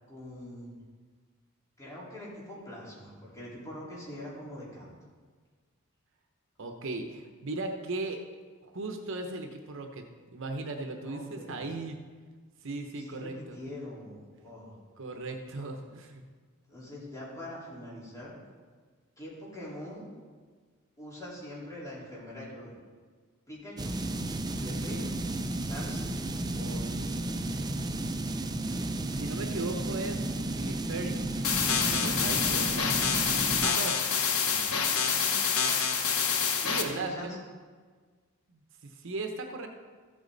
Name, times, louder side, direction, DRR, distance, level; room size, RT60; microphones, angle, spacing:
voice 1, 0.1-0.7 1.8-4.9 11.0-11.7 13.0-14.7 16.7-18.3 19.2-20.0 21.0-22.7 23.5-23.9 24.6-25.1 25.6-26.1 26.5-27.4 34.0-35.6 36.6-37.4, left 1 dB, 15° left, -8 dB, 4.0 m, -44 dB
voice 2, 6.6-8.2 8.6-10.0 10.3-12.0 12.6-13.6 15.0-16.2 29.1-30.2 30.6-31.2 31.6-32.9 33.6-34.0 36.7-37.4 38.5-39.7, right 2 dB, 60° right, 5 dB, 0.9 m, -37 dB
sound 1, 23.8-33.7, right 2 dB, 20° right, 0.5 m, -33 dB
sound 2, 31.4-36.8, left 6 dB, 85° left, 1.2 m, -27 dB
14.0 x 8.6 x 4.0 m, 1.5 s
head